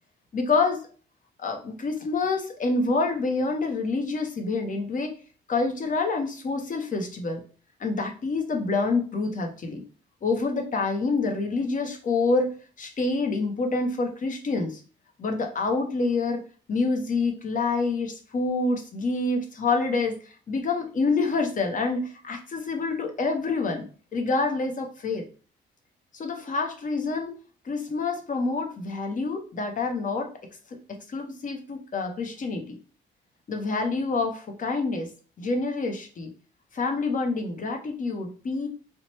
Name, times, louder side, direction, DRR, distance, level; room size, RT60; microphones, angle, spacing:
voice 1, 0.3-0.8 1.4-5.1 5.5-7.4 7.8-9.8 10.2-14.8 15.2-16.4 16.7-20.2 20.5-23.8 24.1-25.2 26.1-27.3 27.6-30.3 31.1-32.8 33.5-35.1 35.4-36.3 36.7-38.7, left 3 dB, 40° left, 4 dB, 0.7 m, -27 dB
2.9 x 2.1 x 3.0 m, 0.38 s
cardioid pair, 90°, 20 cm